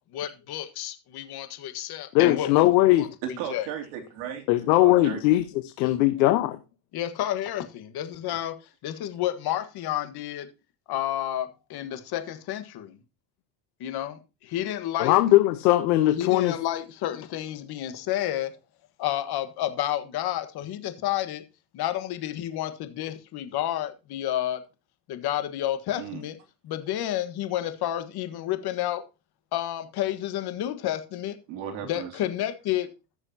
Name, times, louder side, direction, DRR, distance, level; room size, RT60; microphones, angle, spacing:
voice 1, 0.1-2.5 3.0-3.1 3.5-3.7 6.9-10.5 10.9-13.0 13.8-15.2 16.1-18.5 19.0-21.4 21.7-24.6 25.1-26.4 26.6-29.0 29.5-31.4 31.8-32.9, left 12 dB, 50° left, 1.6 m, -30 dB
voice 2, 2.1-3.1 4.5-5.4 5.8-6.6 15.0-16.5, left 16 dB, 90° left, 1.2 m, -20 dB
voice 3, 3.2-4.4 4.8-5.2 8.3-8.4 26.0-26.2 31.5-32.1, right 8 dB, 70° right, 3.1 m, -35 dB
15.5 x 6.5 x 2.9 m
supercardioid pair, 125°, 50 cm